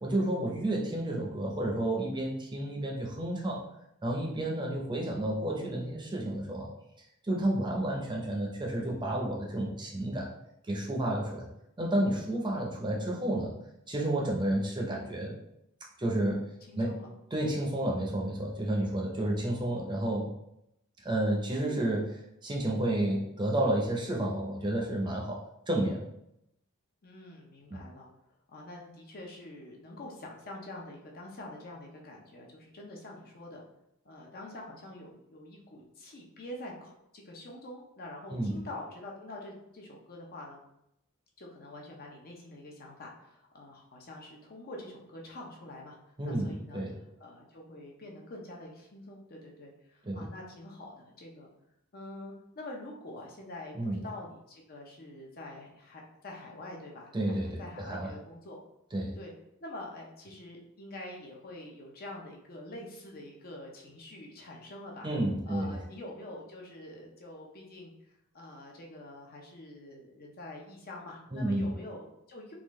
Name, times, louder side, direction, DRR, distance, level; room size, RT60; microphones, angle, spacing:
voice 1, 0.0-3.6 4.0-6.7 7.2-10.3 10.7-11.5 11.8-13.5 13.9-15.3 16.0-16.4 16.7-16.9 17.3-20.3 21.0-25.4 25.7-26.0 27.7-27.8 38.3-38.6 46.2-47.0 50.0-50.3 53.7-54.0 57.1-57.6 57.9-58.1 58.9-59.1 65.0-65.8 71.3-71.7, right 1 dB, 20° right, -2 dB, 0.6 m, -31 dB
voice 2, 16.7-17.1 27.0-28.1 28.5-33.6 34.0-40.6 41.4-46.0 46.2-46.8 47.2-51.5 51.9-58.6 59.1-59.3 59.6-65.1 65.5-67.9 68.3-72.5, left 1 dB, 45° left, -1 dB, 0.6 m, -46 dB
3.7 x 2.4 x 3.1 m, 0.81 s
head